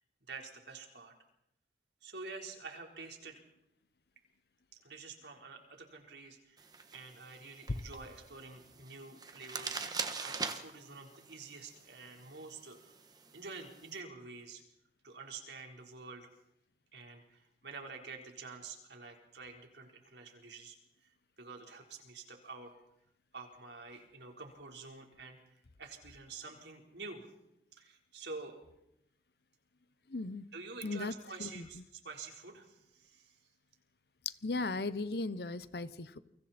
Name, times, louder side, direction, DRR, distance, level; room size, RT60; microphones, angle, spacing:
voice 1, 0.3-1.1 2.0-3.4 4.8-12.9 13.3-14.6 15.0-16.3 16.9-20.8 21.4-22.7 23.3-25.4 25.8-27.2 27.7-28.6 30.5-33.4, right 4 dB, 80° right, 2 dB, 4.2 m, -48 dB
sound 1, 6.6-14.0, right 4 dB, 20° right, 1.5 m, -44 dB
voice 2, 30.1-30.4 30.8-31.1 31.4-31.7 34.2-36.2, left 3 dB, 65° left, 15 dB, 0.9 m, -36 dB
29.0 x 24.5 x 4.4 m, 0.82 s
head